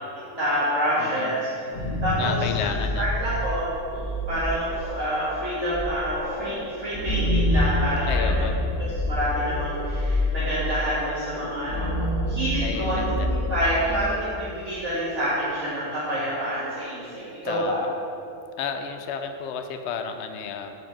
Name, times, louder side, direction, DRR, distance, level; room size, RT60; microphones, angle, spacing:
voice 1, 0.0-2.7 3.0-8.4 8.8-13.0 13.3-17.8, equal, 65° right, -11 dB, 2.4 m, -28 dB
voice 2, 1.0-1.3 2.2-3.1 8.1-8.6 12.6-13.3 17.4-17.9 18.6-20.7, left 7 dB, 65° left, 6 dB, 0.9 m, -32 dB
sound 1, 1.5-14.3, left 1 dB, 35° left, 1.8 m, -27 dB
9.0 x 5.0 x 7.5 m, 2.7 s
omnidirectional pair, 1.3 m